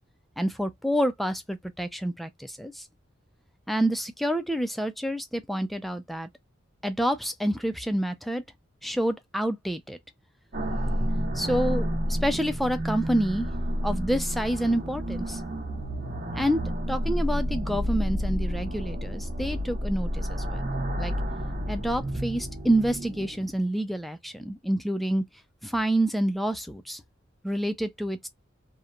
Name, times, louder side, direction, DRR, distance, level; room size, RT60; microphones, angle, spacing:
voice 1, 0.4-2.8 3.7-6.3 6.8-8.4 8.8-10.0 11.3-13.5 13.8-15.4 16.3-16.6 16.9-20.6 21.0-21.1 21.7-25.2 25.6-27.0 27.4-28.3, right 1 dB, ahead, 0.3 m, -28 dB
sound 1, 10.5-23.6, equal, 45° right, 0.9 m, -30 dB
2.9 x 2.1 x 2.4 m
head